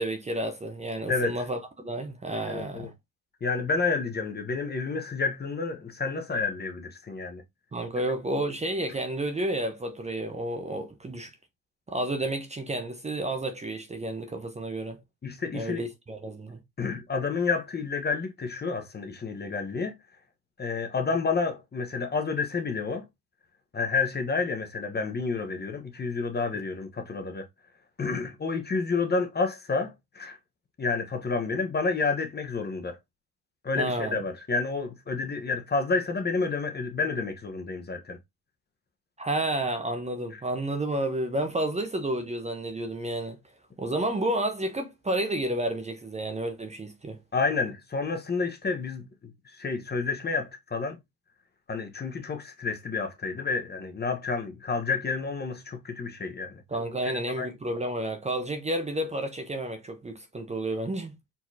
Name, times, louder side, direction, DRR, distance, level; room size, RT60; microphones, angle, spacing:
voice 1, 0.0-2.9 7.7-11.3 11.9-15.0 15.5-16.6 33.8-34.2 39.2-43.4 43.8-47.2 56.7-61.1, right 1 dB, 15° right, 0.9 m, -31 dB
voice 2, 1.1-1.4 2.5-2.9 3.4-7.4 15.2-15.8 16.8-19.9 20.6-23.0 23.7-27.5 28.0-30.4 30.8-33.0 33.6-38.2 47.3-51.0 51.7-56.6 57.0-57.5, left 4 dB, 25° left, 1.2 m, -30 dB
4.3 x 4.2 x 2.8 m
hypercardioid pair, 65°, 40 cm